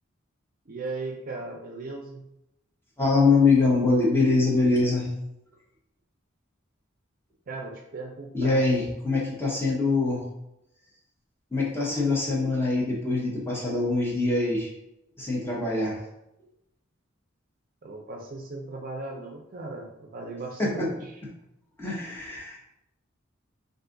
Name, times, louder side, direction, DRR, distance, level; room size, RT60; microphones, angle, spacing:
voice 1, 0.7-2.2 7.5-8.6 17.8-21.2, right 3 dB, 45° right, 1 dB, 0.5 m, -37 dB
voice 2, 3.0-5.1 8.3-10.2 11.5-14.7 15.2-16.0 20.6-20.9 21.8-22.6, left 3 dB, 10° left, -5 dB, 0.8 m, -23 dB
2.6 x 2.4 x 3.7 m, 0.85 s
head